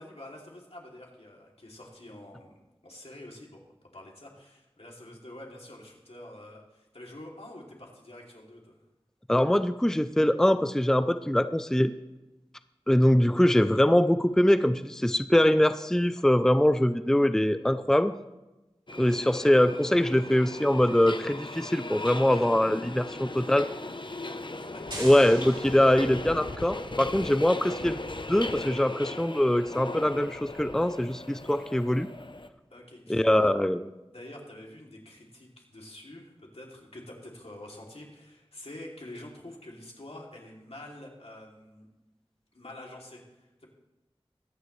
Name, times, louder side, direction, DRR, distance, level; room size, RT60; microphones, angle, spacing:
voice 1, 0.0-3.6 3.9-8.8 16.2-16.3 23.0-23.3 23.9-25.0 32.7-33.5 34.1-41.9 42.5-43.7, left 1 dB, 80° left, -2 dB, 2.8 m, -47 dB
voice 2, 9.3-11.9 12.9-18.1 19.0-23.7 25.0-28.0 28.3-32.1 33.1-33.8, left 1 dB, 5° left, 12 dB, 0.5 m, -23 dB
Subway metro underground, 18.9-32.5, left 2 dB, 50° left, 0.8 m, -38 dB
sound 1, 24.9-26.7, right 1 dB, 50° right, 3.1 m, -42 dB
22.5 x 9.6 x 3.2 m, 1.0 s
wide cardioid pair, 40°, 10 cm